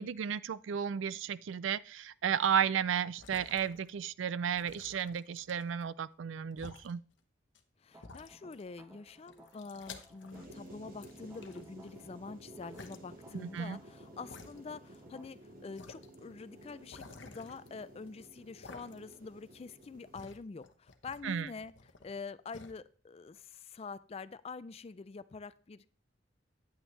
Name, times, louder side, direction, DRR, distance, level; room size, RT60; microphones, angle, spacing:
voice 1, 0.0-7.0 13.5-13.8 21.2-21.5, right 8 dB, 80° right, 0.4 m, -33 dB
sound 1, 3.0-4.1 4.5-5.9 6.5-6.9 7.5-7.6 8.0-8.8 9.1-10.7 11.0-12.0 12.7-13.0 13.6-13.7 14.3-15.0 15.3-15.4 15.8-16.1 16.9-18.1 18.6-19.3 19.6-22.2 22.5-22.7, left 4 dB, 70° left, 1.0 m, -53 dB
voice 2, 7.8-21.7 22.0-25.9, left 4 dB, 30° left, 0.4 m, -46 dB
sound 2, 7.9-15.3, right 1 dB, 15° right, 0.9 m, -60 dB
sound 3, 10.3-20.3, right 1 dB, 50° right, 1.7 m, -53 dB
9.6 x 9.0 x 3.2 m
head